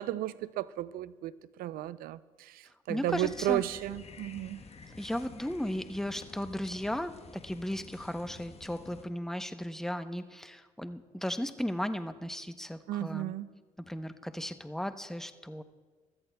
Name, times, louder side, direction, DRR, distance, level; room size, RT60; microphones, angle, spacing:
voice 1, 0.0-4.6 12.9-13.5, right 14 dB, 75° right, 0.4 m, -34 dB
voice 2, 2.9-3.6 5.0-7.1 7.4-13.3 13.8-15.6, equal, 5° left, 0.8 m, -35 dB
sound 1, 3.1-9.0, left 4 dB, 45° left, 1.2 m, -50 dB
22.5 x 13.5 x 2.3 m
supercardioid pair, 60°, 15 cm